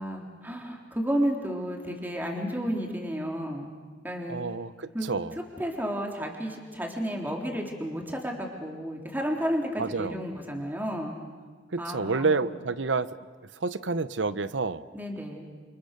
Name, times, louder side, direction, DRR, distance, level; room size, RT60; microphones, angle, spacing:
voice 1, 0.0-3.7 4.0-4.4 4.9-5.1 5.6-11.1 11.8-12.4 14.9-15.5, equal, 10° right, 1 dB, 3.6 m, -32 dB
voice 2, 4.3-5.3 9.8-10.2 11.7-13.1 13.6-14.8, right 4 dB, 85° right, 14 dB, 0.9 m, -29 dB
28.5 x 27.5 x 6.7 m, 1.5 s
head